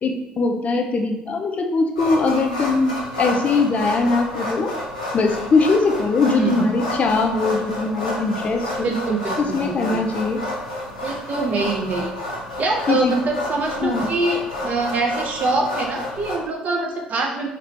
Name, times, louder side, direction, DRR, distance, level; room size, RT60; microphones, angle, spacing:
voice 1, 0.0-4.7 5.1-8.9 9.4-10.4 12.9-13.2 13.8-14.1, left 3 dB, 35° left, 4 dB, 0.4 m, -21 dB
sound 1, 1.9-16.3, left 1 dB, 80° left, 0.6 m, -30 dB
voice 2, 6.4-6.7 8.8-10.0 11.0-12.1 12.6-17.5, right 3 dB, 40° right, 2 dB, 0.4 m, -24 dB
2.8 x 2.5 x 3.1 m, 0.86 s
figure-of-eight pair, 50°, 4 cm